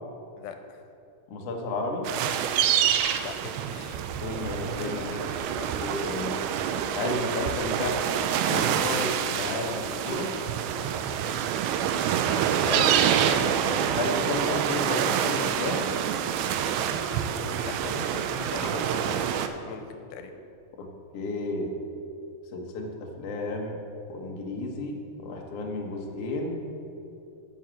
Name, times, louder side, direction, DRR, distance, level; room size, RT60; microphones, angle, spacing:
voice 1, 0.4-0.8 3.2-4.0 4.8-5.7 12.6-12.9 16.9-20.3, left 6 dB, 90° left, 7 dB, 2.8 m, -40 dB
voice 2, 1.3-2.1 4.2-5.2 5.8-6.4 6.9-8.0 8.4-10.3 12.6-12.9 13.6-15.8 20.8-20.9 21.1-21.8 22.5-23.8 24.1-26.6, left 2 dB, 70° left, 1 dB, 1.4 m, -32 dB
sound 1, 2.0-19.5, right 9 dB, 80° right, 2.3 m, -27 dB
11.5 x 6.4 x 7.6 m, 2.7 s
omnidirectional pair, 4.8 m